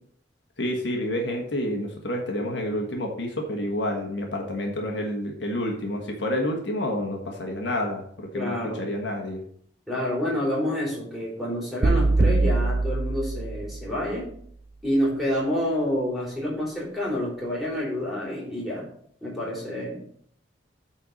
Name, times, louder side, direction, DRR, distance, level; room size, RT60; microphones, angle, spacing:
voice 1, 0.6-9.4, left 1 dB, 65° left, 1 dB, 1.6 m, -29 dB
voice 2, 8.3-8.9 9.9-14.3 14.8-18.8 19.2-20.0, left 1 dB, ahead, -5 dB, 3.5 m, -28 dB
sound 1, 11.8-14.1, right 2 dB, 50° right, 0.8 m, -23 dB
9.1 x 4.4 x 6.5 m, 0.64 s
head